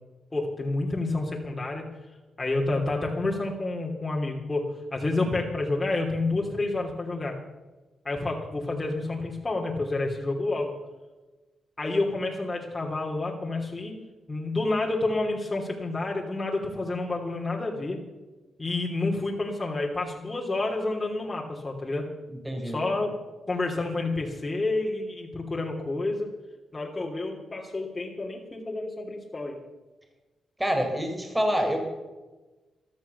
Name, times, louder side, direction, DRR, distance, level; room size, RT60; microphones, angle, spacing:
voice 1, 0.3-1.8 2.4-7.3 8.0-10.7 11.8-14.0 14.3-18.0 18.6-22.1 22.6-23.2 23.5-26.3 26.7-29.6, left 2 dB, 25° left, -2 dB, 3.0 m, -29 dB
voice 2, 22.4-22.8 30.6-31.8, equal, 10° right, 3 dB, 4.3 m, -26 dB
14.0 x 13.0 x 6.9 m, 1.2 s
cardioid pair, 65°, 0 cm